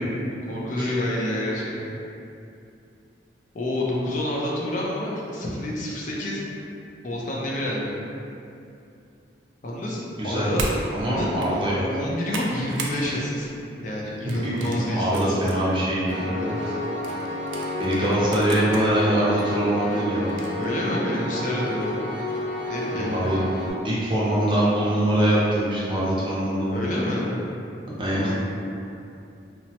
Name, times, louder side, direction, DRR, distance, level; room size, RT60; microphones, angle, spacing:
voice 1, 0.5-2.0 3.5-6.4 7.0-8.0 9.6-10.7 11.1-11.3 11.9-13.5 13.8-15.4 16.3-16.8 20.6-22.0 22.6-23.3 26.7-27.4 28.1-28.3, left 1 dB, 45° left, -4 dB, 0.4 m, -28 dB
voice 2, 10.2-10.5 10.9-11.9 14.3-14.5 14.9-16.2 17.8-20.2 22.9-23.4 23.8-26.8 28.0-28.3, right 1 dB, 25° right, -8 dB, 0.5 m, -23 dB
sound 1, 10.6-10.8 11.3-11.5 11.9-13.0 13.4-13.6 14.3-15.6 16.1-16.2 17.0-18.8 19.4-19.5 20.3-20.6, right 3 dB, 90° right, 0.4 m, -35 dB
Piano, 16.1-23.7, left 1 dB, 85° left, 0.7 m, -31 dB
3.1 x 2.0 x 2.8 m, 2.6 s
head